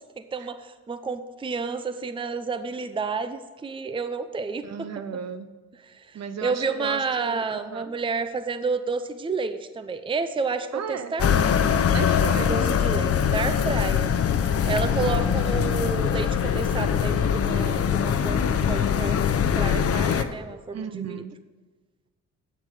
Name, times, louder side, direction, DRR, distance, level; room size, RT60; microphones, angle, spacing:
voice 1, 0.2-4.9 5.9-11.6 12.4-14.1 14.7-21.2, right 4 dB, 15° right, 11 dB, 0.6 m, -30 dB
voice 2, 4.6-5.5 6.1-7.9 10.7-11.1 11.9-12.6 15.0-15.3 20.7-21.3, right 7 dB, 60° right, 11 dB, 0.9 m, -34 dB
sound 1, 11.2-20.2, left 8 dB, 50° left, 0.9 m, -23 dB
11.0 x 7.9 x 4.9 m, 1.4 s
cardioid pair, 90°, 30 cm